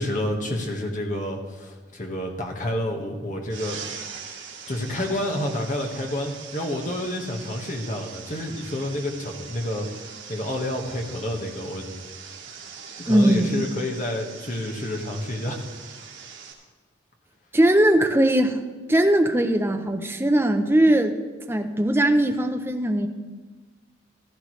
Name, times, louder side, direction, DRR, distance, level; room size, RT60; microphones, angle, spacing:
voice 1, 0.0-3.8 4.7-11.8 13.0-15.6, left 1 dB, 40° left, 1 dB, 1.5 m, -29 dB
sound 1, 3.5-16.5, right 6 dB, 80° right, 2.2 m, -41 dB
voice 2, 13.1-13.7 17.5-18.6 18.9-21.1 21.5-23.1, right 1 dB, 10° right, 6 dB, 0.6 m, -20 dB
15.0 x 12.5 x 3.2 m, 1.3 s
head